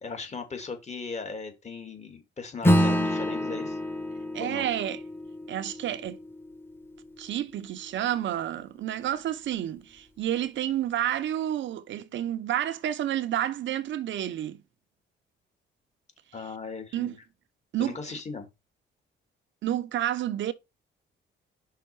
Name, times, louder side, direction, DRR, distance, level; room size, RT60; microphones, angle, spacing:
voice 1, 0.0-3.8 4.4-4.7 16.3-17.2 17.8-18.5, left 4 dB, 35° left, 2.3 m, -38 dB
Acoustic guitar / Strum, 2.6-7.4, equal, 10° left, 1.3 m, -28 dB
voice 2, 4.3-5.0 5.5-6.2 7.2-14.6 16.9-17.1 17.7-18.0 19.6-20.5, right 11 dB, 70° right, 0.8 m, -30 dB
5.6 x 4.1 x 5.3 m
cardioid pair, 90°, 20 cm